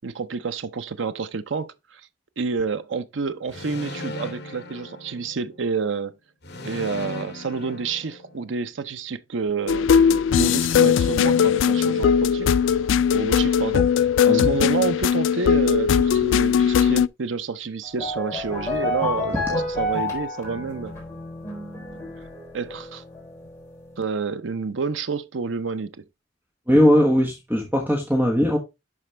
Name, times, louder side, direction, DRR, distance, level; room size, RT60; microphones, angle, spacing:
voice 1, 0.0-2.0 2.4-6.1 6.6-12.5 13.1-20.9 22.5-23.0 24.0-26.0, right 5 dB, 80° right, 0.6 m, -29 dB
sound 1, 3.5-5.7 6.4-8.6, left 2 dB, 60° left, 1.7 m, -37 dB
sound 2, 9.7-17.1, left 7 dB, 80° left, 0.3 m, -19 dB
sound 3, 17.8-23.7, left 2 dB, 15° left, 3.8 m, -30 dB
voice 2, 26.7-28.6, equal, 10° right, 1.2 m, -19 dB
11.0 x 4.3 x 3.2 m
head